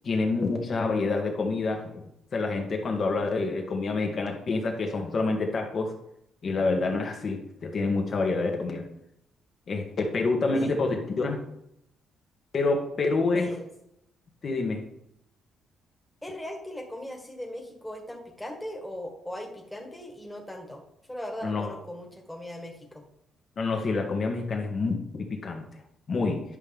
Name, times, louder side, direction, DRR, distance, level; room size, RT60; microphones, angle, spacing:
voice 1, 0.0-2.0 2.3-5.9 6.4-8.8 9.7-11.4 12.5-13.5 14.4-14.8 21.4-21.7 23.6-25.6 26.1-26.4, left 3 dB, 50° left, 2 dB, 1.9 m, -27 dB
voice 2, 16.2-20.8 21.1-23.1, left 1 dB, 10° left, 1 dB, 1.9 m, -39 dB
10.5 x 5.8 x 3.6 m, 0.79 s
cardioid pair, 90°, 0 cm